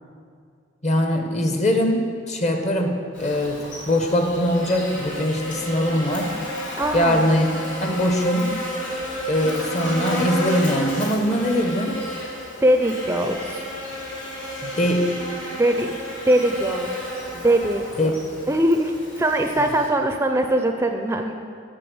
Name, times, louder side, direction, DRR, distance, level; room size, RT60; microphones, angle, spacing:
voice 1, 0.8-6.3 6.9-7.5 7.8-8.5 9.3-12.0 14.6-15.1 18.0-18.1 19.6-19.7, equal, 40° left, 4 dB, 1.0 m, -22 dB
Buzz, 3.1-19.9, equal, 80° left, 2.9 m, -32 dB
voice 2, 6.8-7.2 12.6-13.6 15.5-16.0 16.3-16.9 17.3-18.1 18.5-21.3, right 1 dB, 15° right, 5 dB, 0.5 m, -21 dB
8.5 x 6.8 x 7.9 m, 2.3 s
head